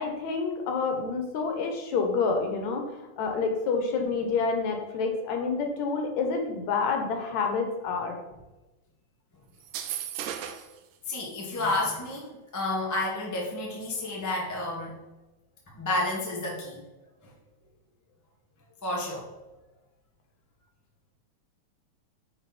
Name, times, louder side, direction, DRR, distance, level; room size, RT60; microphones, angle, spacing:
voice 1, 0.0-8.2, left 4 dB, 75° left, 3 dB, 2.2 m, -28 dB
sound 1, 9.6-10.8, right 10 dB, 80° right, 1.9 m, -35 dB
voice 2, 11.1-15.0 15.7-16.8 17.2-17.3 18.8-19.3, left 2 dB, 15° left, -3 dB, 0.5 m, -30 dB
8.8 x 4.1 x 4.2 m, 1.0 s
omnidirectional pair, 3.4 m